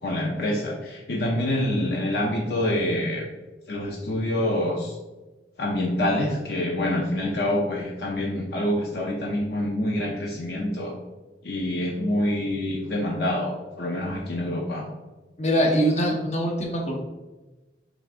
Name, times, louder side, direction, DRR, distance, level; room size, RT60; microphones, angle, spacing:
voice 1, 0.0-3.3 3.7-5.0 5.6-10.9 11.4-14.9, left 1 dB, 65° left, -1 dB, 0.6 m, -26 dB
voice 2, 15.4-16.9, equal, 40° left, 0 dB, 0.9 m, -23 dB
6.2 x 3.4 x 2.4 m, 1.1 s
head